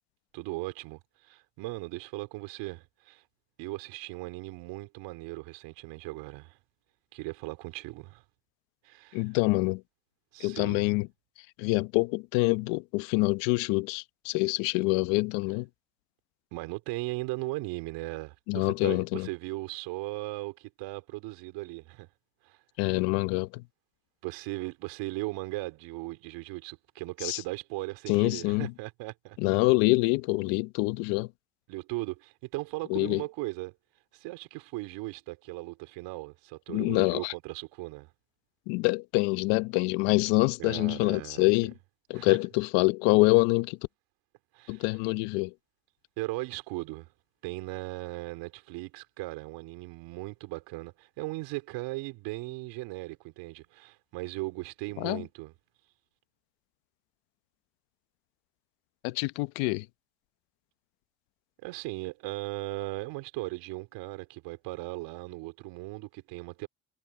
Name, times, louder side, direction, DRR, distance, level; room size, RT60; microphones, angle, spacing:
voice 1, 0.3-3.2 3.6-6.6 7.1-8.2 8.8-9.2 10.3-10.8 16.5-22.1 22.4-22.6 24.2-29.6 31.7-33.7 34.1-38.1 40.6-41.5 42.1-42.4 44.5-44.8 46.2-47.1 47.4-55.5 61.6-66.7, right 22 dB, 80° right, 3.9 m, -38 dB
voice 2, 9.1-9.8 10.4-11.1 11.6-15.7 18.5-19.3 22.8-23.6 27.2-27.4 28.1-28.7 29.4-31.3 32.9-33.2 36.7-37.3 38.7-41.7 42.1-43.8 44.7-45.5 55.0-55.2 59.0-59.9, left 24 dB, 85° left, 1.0 m, -26 dB
hypercardioid pair, 60°, 42 cm